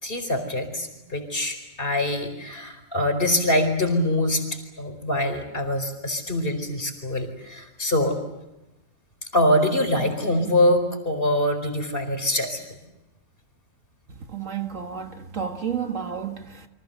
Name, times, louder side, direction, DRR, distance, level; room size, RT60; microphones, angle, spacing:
voice 1, 0.0-4.4 4.8-8.2 9.3-12.6, left 1 dB, 40° left, 4.8 m, -24 dB
voice 2, 14.2-16.7, right 7 dB, 60° right, 2.0 m, -31 dB
29.5 x 25.0 x 7.0 m
omnidirectional pair, 1.5 m